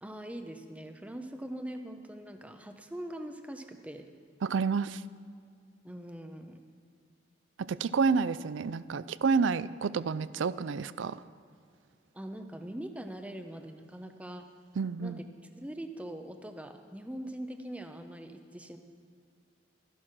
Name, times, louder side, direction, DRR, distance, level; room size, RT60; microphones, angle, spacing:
voice 1, 0.0-4.1 5.8-6.6 12.1-14.4 15.0-15.2 15.5-18.8, right 1 dB, 5° right, 6 dB, 0.8 m, -42 dB
voice 2, 4.4-5.0 7.6-11.2 14.8-15.2, right 5 dB, 90° right, 16 dB, 0.4 m, -29 dB
13.5 x 11.0 x 6.0 m, 2.2 s
head